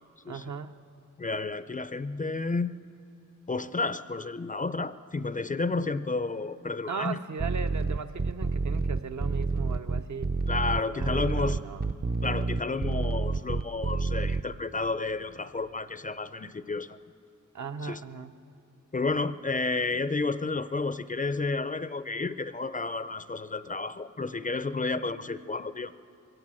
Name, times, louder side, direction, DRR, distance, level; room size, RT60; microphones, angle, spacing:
voice 1, 0.3-0.8 6.9-10.4 10.9-11.8 17.5-18.3, right 5 dB, 65° right, 7 dB, 0.8 m, -37 dB
voice 2, 1.2-2.7 3.5-7.2 10.5-11.6 12.2-17.0 17.8-18.0 18.9-25.9, left 3 dB, 25° left, 13 dB, 0.4 m, -31 dB
sound 1, 7.4-14.4, right 4 dB, 30° right, 0.5 m, -28 dB
22.0 x 17.0 x 7.6 m, 2.7 s
wide cardioid pair, 105°, 31 cm